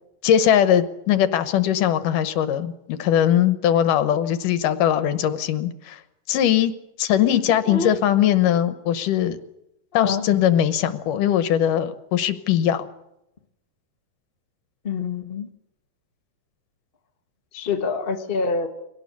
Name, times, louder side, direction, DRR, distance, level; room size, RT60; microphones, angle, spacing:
voice 1, 0.2-6.0 6.3-6.7 7.0-9.4 9.9-12.9, left 10 dB, 75° left, 12 dB, 2.6 m, -20 dB
voice 2, 7.3-8.0 9.9-10.3 14.8-15.5 17.5-18.7, left 4 dB, 35° left, 4 dB, 0.8 m, -26 dB
23.5 x 18.0 x 8.3 m, 0.86 s
omnidirectional pair, 4.0 m